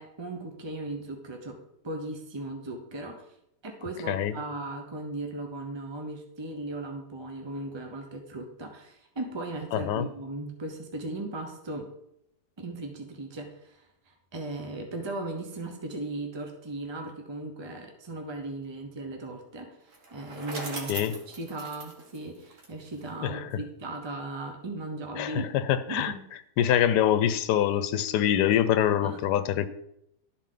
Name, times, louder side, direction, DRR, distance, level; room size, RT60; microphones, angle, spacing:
voice 1, 0.0-1.6 1.8-3.3 3.6-11.9 12.6-25.5 25.9-26.3 29.0-29.3, right 2 dB, 35° right, 3 dB, 0.4 m, -37 dB
voice 2, 4.1-4.4 9.7-10.1 20.9-21.2 23.2-23.5 25.2-26.1 26.6-29.7, left 10 dB, 85° left, 13 dB, 1.2 m, -25 dB
Bicycle, 19.9-23.1, right 2 dB, 50° right, 1.5 m, -40 dB
12.0 x 4.4 x 3.8 m, 0.78 s
omnidirectional pair, 1.7 m